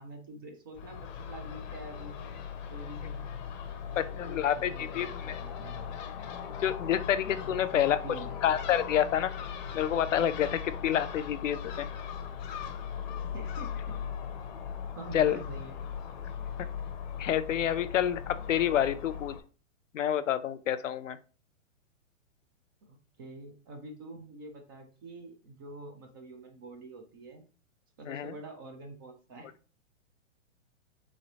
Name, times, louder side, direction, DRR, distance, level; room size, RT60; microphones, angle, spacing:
voice 1, 0.0-2.2 2.7-5.9 7.4-8.3 13.3-14.0 15.0-15.9 22.8-27.5 28.0-29.5, right 2 dB, 20° right, 4 dB, 0.3 m, -46 dB
Crow / Gull seagull, 0.8-19.4, left 7 dB, 40° left, 0.6 m, -39 dB
voice 2, 4.0-5.4 6.6-8.0 8.4-9.3 9.7-11.9 15.1-15.4 17.2-19.3 19.9-21.2 28.1-28.3, left 10 dB, 75° left, 12 dB, 0.6 m, -28 dB
3.8 x 3.1 x 2.8 m, 0.36 s
hypercardioid pair, 125°, 38 cm